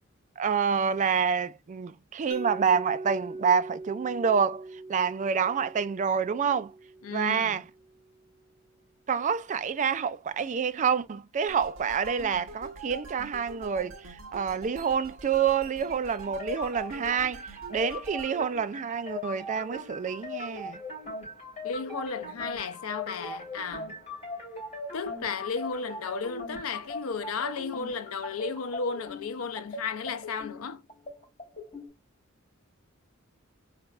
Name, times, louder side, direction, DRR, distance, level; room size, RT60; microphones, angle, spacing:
voice 1, 0.4-4.6 4.9-6.7 7.1-7.6 9.1-20.8, right 6 dB, 35° right, 0.3 m, -27 dB
Mallet percussion, 2.3-8.1, right 2 dB, 50° left, 1.0 m, -42 dB
voice 2, 7.0-7.6 21.6-23.9 24.9-30.8, left 5 dB, 85° left, 0.5 m, -34 dB
sound 1, 11.5-18.3, right 2 dB, 65° right, 1.2 m, -45 dB
sound 2, 15.9-31.9, left 2 dB, 30° left, 2.9 m, -40 dB
4.2 x 3.3 x 2.4 m
head